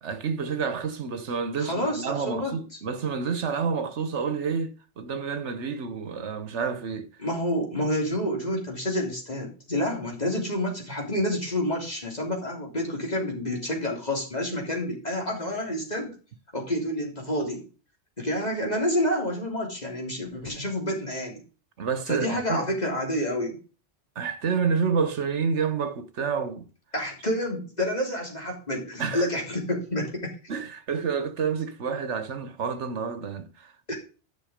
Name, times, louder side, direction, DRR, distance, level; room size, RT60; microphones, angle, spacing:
voice 1, 0.0-7.1 18.4-18.6 21.8-22.7 24.2-26.7 29.0-29.3 30.5-33.9, right 6 dB, 80° right, 1.4 m, -29 dB
voice 2, 1.6-2.5 7.2-16.2 16.5-17.6 18.2-21.4 22.1-23.6 26.9-30.3 33.9-34.0, left 1 dB, 35° left, 3.5 m, -28 dB
10.5 x 6.3 x 5.1 m
omnidirectional pair, 1.2 m